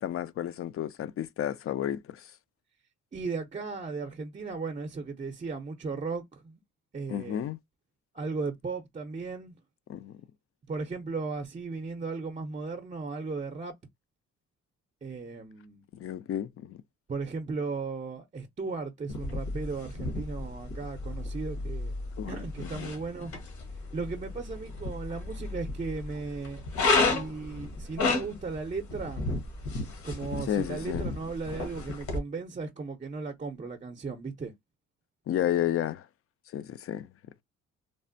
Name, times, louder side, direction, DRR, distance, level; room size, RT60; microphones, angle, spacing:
voice 1, 0.0-2.3 7.1-7.6 9.9-10.2 15.9-16.8 22.2-22.4 22.7-22.9 30.5-31.1 35.3-36.1 36.5-37.1, left 11 dB, 50° left, 0.4 m, -32 dB
voice 2, 3.1-6.6 6.9-7.5 8.1-9.5 10.7-13.7 15.0-15.8 17.1-21.9 22.3-23.3 23.9-26.6 27.0-29.3 30.0-34.5, right 4 dB, 25° right, 0.6 m, -36 dB
sound 1, 19.1-32.2, left 3 dB, 70° left, 1.2 m, -33 dB
3.2 x 2.0 x 2.5 m
cardioid pair, 90°, 30 cm